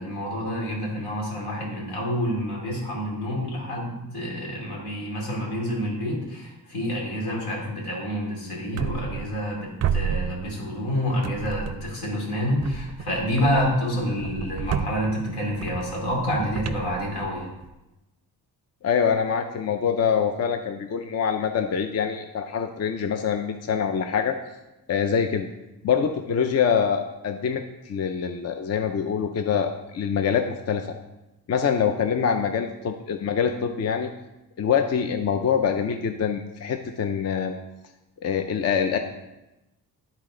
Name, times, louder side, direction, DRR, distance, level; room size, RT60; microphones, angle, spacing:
voice 1, 0.0-17.5, equal, 80° left, -3 dB, 2.8 m, -28 dB
sound 1, 8.8-9.5 9.8-10.9 11.2-12.1 12.6-17.7, right 7 dB, 45° right, 0.4 m, -32 dB
voice 2, 18.8-24.4 24.9-25.5 25.8-30.9 31.5-34.1 34.6-37.6 38.2-39.0, left 7 dB, 40° left, 6 dB, 0.5 m, -25 dB
11.5 x 4.1 x 3.8 m, 0.97 s
cardioid pair, 125°, 38 cm